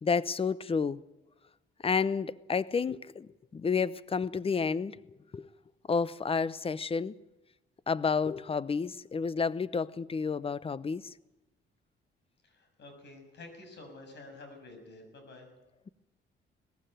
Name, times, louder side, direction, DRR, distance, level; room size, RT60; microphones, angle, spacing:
voice 1, 0.0-1.0 1.8-5.5 5.9-7.2 7.9-11.1, left 5 dB, 30° left, 0.8 m, -30 dB
voice 2, 12.4-15.5, left 2 dB, 60° left, 6.6 m, -50 dB
19.0 x 15.5 x 9.1 m
cardioid pair, 90°, 20 cm